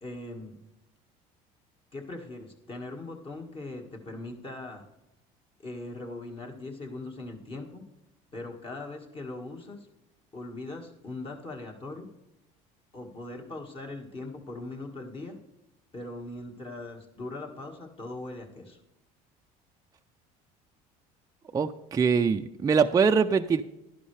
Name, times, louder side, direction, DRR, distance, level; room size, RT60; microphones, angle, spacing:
voice 1, 0.0-0.6 1.9-4.8 5.6-7.8 8.3-9.9 10.3-12.1 12.9-15.3 15.9-18.8, left 2 dB, 35° left, 2 dB, 1.9 m, -40 dB
voice 2, 21.5-23.6, right 5 dB, 20° right, 6 dB, 0.5 m, -23 dB
11.0 x 11.0 x 3.3 m, 0.90 s
supercardioid pair, 95°, 17 cm